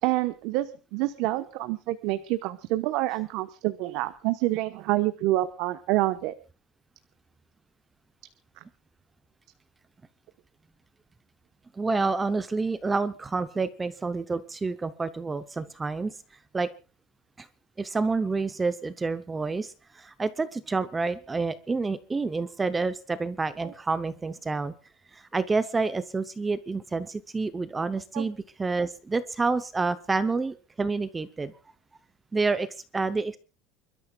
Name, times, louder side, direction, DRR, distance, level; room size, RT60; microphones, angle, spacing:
voice 1, 0.0-6.3 23.6-23.7 28.1-28.2, right 17 dB, 55° right, 10 dB, 1.1 m, -27 dB
voice 2, 11.7-16.1 16.5-16.7 17.4-17.5 17.8-24.7 25.1-31.5 32.3-32.7 32.9-33.4, right 3 dB, 10° right, 12 dB, 0.7 m, -28 dB
29.5 x 13.0 x 2.3 m, 0.34 s
cardioid pair, 175°, 0 cm